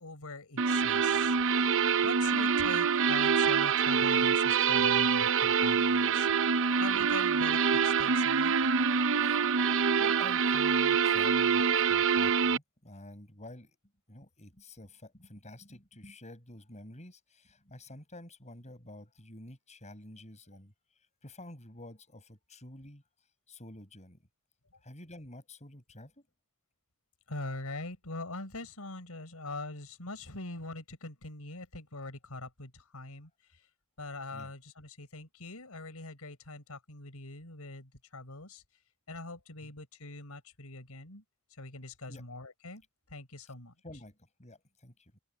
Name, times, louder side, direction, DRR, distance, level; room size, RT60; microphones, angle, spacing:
voice 1, 0.0-1.4 2.0-6.3 6.8-8.6 27.3-33.7 34.0-38.6 39.1-41.2 41.5-42.8 43.1-43.7, left 2 dB, 85° left, 4.3 m, -43 dB
sound 1, 0.6-12.6, right 6 dB, 65° right, 0.8 m, -26 dB
voice 2, 9.1-9.6 10.0-13.8 14.1-20.7 21.2-23.0 23.5-24.2 24.8-26.3 34.3-34.5 39.6-39.7 42.1-42.3 43.8-45.2, left 1 dB, 30° left, 7.9 m, -49 dB
open air
head